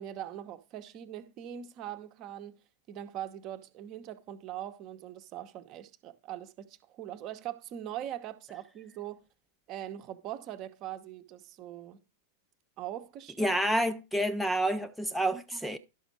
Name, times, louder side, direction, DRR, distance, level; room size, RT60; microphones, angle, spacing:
voice 1, 0.0-2.5 2.9-9.2 9.7-12.0 12.8-13.6 15.3-15.8, right 11 dB, 40° right, 0.9 m, -41 dB
voice 2, 13.4-15.8, right 1 dB, ahead, 0.5 m, -29 dB
12.0 x 6.1 x 3.9 m
figure-of-eight pair, 90°, 0 cm